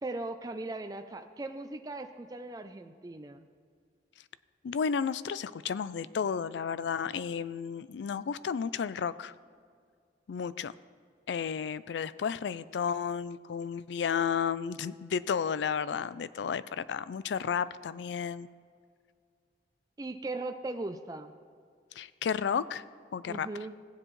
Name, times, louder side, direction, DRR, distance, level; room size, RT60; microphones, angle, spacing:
voice 1, 0.0-3.5 20.0-21.3 23.3-23.7, right 2 dB, 20° right, 6 dB, 0.4 m, -38 dB
voice 2, 4.6-9.3 10.3-10.7 11.3-18.5 22.0-22.8 23.1-23.5, left 7 dB, 85° left, 16 dB, 0.4 m, -32 dB
16.5 x 7.6 x 3.2 m, 2.1 s
head